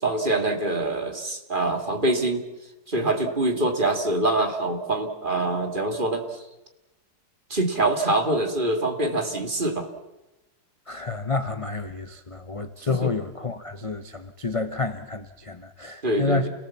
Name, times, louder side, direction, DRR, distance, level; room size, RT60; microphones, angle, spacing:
voice 1, 0.0-2.5 2.9-6.2 7.5-9.9 12.9-13.1 16.0-16.5, right 2 dB, 30° right, 5 dB, 2.3 m, -24 dB
voice 2, 10.9-16.5, left 3 dB, 30° left, 9 dB, 0.6 m, -29 dB
29.0 x 18.5 x 7.2 m, 0.99 s
omnidirectional pair, 1.9 m